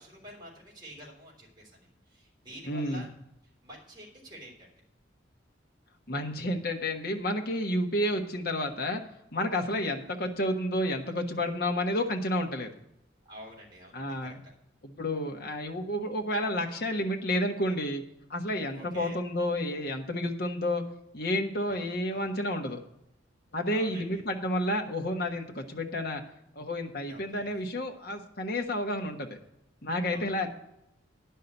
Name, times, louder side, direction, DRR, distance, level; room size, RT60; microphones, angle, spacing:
voice 1, 0.0-3.1 3.4-4.7 9.7-9.8 13.2-14.5 18.7-19.2 21.7-22.3 23.7-24.2 27.1-27.6 30.1-30.3, equal, 20° right, -5 dB, 3.4 m, -48 dB
voice 2, 2.7-3.0 6.1-9.0 9.3-12.7 13.9-14.4 14.8-18.0 18.3-20.8 21.1-22.8 23.5-26.2 26.5-29.4 29.8-30.5, left 1 dB, 55° left, 3 dB, 1.3 m, -30 dB
10.5 x 5.7 x 8.0 m, 0.82 s
head